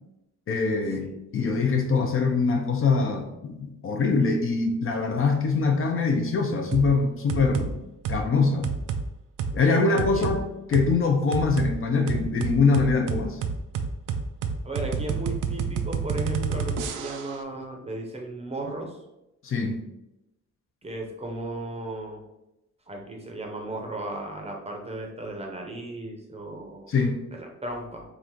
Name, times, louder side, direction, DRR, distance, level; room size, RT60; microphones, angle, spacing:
voice 1, 0.5-1.1 1.3-7.8 8.1-8.7 9.5-13.4 19.4-19.8 26.9-27.2, left 4 dB, 45° left, 4 dB, 0.5 m, -23 dB
sound 1, 6.7-6.9 7.3-7.7 8.0-8.2 8.6-9.0 9.4-9.5 10.0-10.4 10.7-10.9 11.3-11.7 12.1-17.4, right 6 dB, 85° right, 0.5 m, -29 dB
voice 2, 9.8-10.3 14.6-19.0 20.8-22.2 22.9-26.9 27.3-28.0, right 2 dB, 20° right, 1 dB, 0.7 m, -35 dB
3.8 x 2.5 x 4.4 m, 0.90 s
cardioid pair, 145°, 31 cm